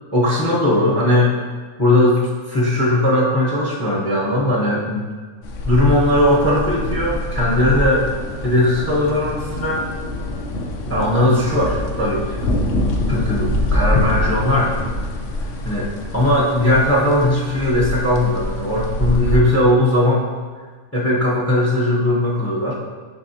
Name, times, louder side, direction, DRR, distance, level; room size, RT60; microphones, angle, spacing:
voice 1, 0.1-1.4 1.8-5.1 5.6-8.1 8.4-9.8 10.9-12.4 13.1-14.7 15.6-20.2 20.9-22.7, left 1 dB, 15° left, -5 dB, 0.8 m, -18 dB
sound 1, 5.4-19.4, left 1 dB, 65° left, 1.0 m, -25 dB
6.5 x 5.3 x 2.8 m, 1.5 s
omnidirectional pair, 1.4 m